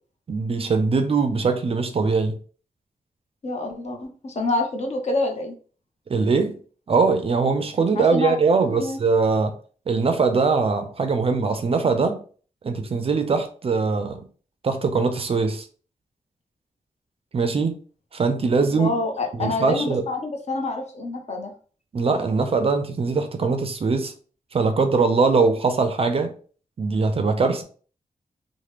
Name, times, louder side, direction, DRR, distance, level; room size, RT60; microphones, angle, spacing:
voice 1, 0.3-2.4 6.1-6.6 6.9-9.5 9.9-12.2 12.6-14.2 14.6-15.7 17.3-17.8 18.1-18.9 19.3-20.0 21.9-24.1 24.5-26.3 26.8-27.6, right 4 dB, 40° right, 0.4 m, -21 dB
voice 2, 3.4-5.5 7.9-8.4 8.6-9.0 18.7-21.5, left 2 dB, 50° left, 0.6 m, -27 dB
2.9 x 2.1 x 3.3 m
wide cardioid pair, 170°, 14 cm